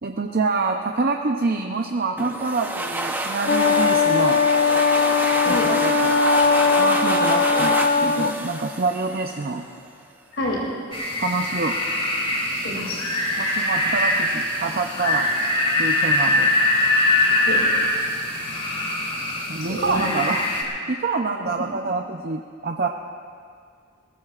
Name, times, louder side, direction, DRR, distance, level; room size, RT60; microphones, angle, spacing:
voice 1, 0.0-4.4 5.4-6.2 6.8-9.6 11.2-11.8 13.4-15.3 15.8-16.5 19.5-22.9, right 3 dB, 45° right, 3 dB, 0.6 m, -26 dB
sound 1, 2.2-9.7, right 2 dB, 10° right, 0.8 m, -28 dB
Wind instrument woodwind instrument, 3.5-8.3, left 5 dB, 50° left, 1.0 m, -19 dB
sound 2, 10.9-20.6, left 1 dB, 30° left, 2.3 m, -23 dB
voice 2, 12.5-13.0 17.4-17.6 19.2-19.3 19.7-20.0, left 1 dB, 75° left, -5 dB, 2.9 m, -28 dB
22.5 x 19.0 x 2.5 m, 2.2 s
head